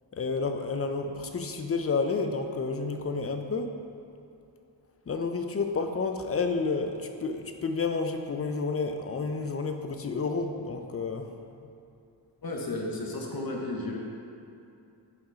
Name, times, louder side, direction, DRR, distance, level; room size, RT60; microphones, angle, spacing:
voice 1, 0.1-3.7 5.1-11.3, left 4 dB, 35° left, 6 dB, 0.5 m, -30 dB
voice 2, 12.4-14.0, left 2 dB, 55° left, -1 dB, 1.1 m, -33 dB
5.7 x 3.8 x 5.5 m, 2.6 s
wide cardioid pair, 80°, 42 cm